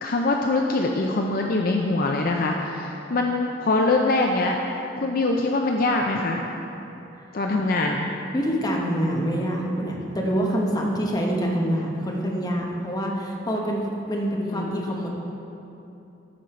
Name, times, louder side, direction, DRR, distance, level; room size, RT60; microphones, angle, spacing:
voice 1, 0.0-4.6 5.0-6.4 7.3-8.1 14.3-14.8, left 2 dB, 50° left, 1 dB, 0.5 m, -23 dB
voice 2, 8.3-13.8 14.1-15.1, equal, 20° left, -2 dB, 1.1 m, -26 dB
14.0 x 5.4 x 4.4 m, 3.0 s
head